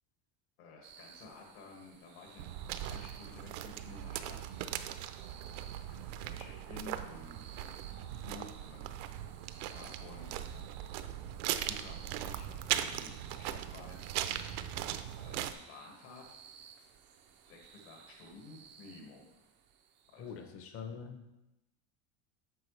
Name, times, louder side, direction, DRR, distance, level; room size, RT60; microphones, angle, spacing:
voice 1, 0.6-4.4 5.9-7.7 8.1-8.9 9.6-10.4 11.4-14.1 15.2-16.4 17.5-19.2 20.1-20.5, left 3 dB, 60° left, -1 dB, 1.9 m, -53 dB
sound 1, 0.8-20.5, right 7 dB, 30° right, 0.4 m, -58 dB
sound 2, 2.4-15.5, right 11 dB, 75° right, 0.7 m, -39 dB
voice 2, 20.2-21.3, left 6 dB, 30° left, 6 dB, 0.8 m, -44 dB
9.2 x 6.4 x 3.2 m, 0.95 s
cardioid pair, 170°, 44 cm